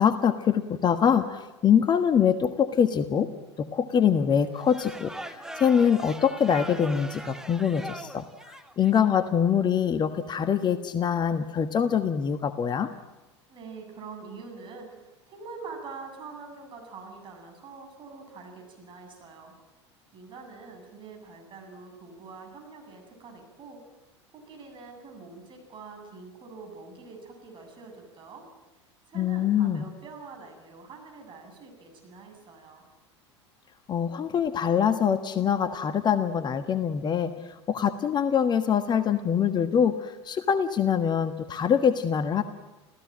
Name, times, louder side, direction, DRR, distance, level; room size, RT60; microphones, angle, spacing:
voice 1, 0.0-3.3 3.6-12.9 29.1-29.8 33.9-37.3 37.7-42.4, left 8 dB, 30° left, 10 dB, 1.4 m, -24 dB
sound 1, 4.5-9.1, right 1 dB, 5° right, 1.6 m, -40 dB
voice 2, 13.5-19.5 20.1-23.8 24.3-28.4 29.1-32.9, right 4 dB, 35° right, 3 dB, 7.6 m, -45 dB
28.5 x 16.5 x 8.8 m, 1.1 s
figure-of-eight pair, 80°, 15 cm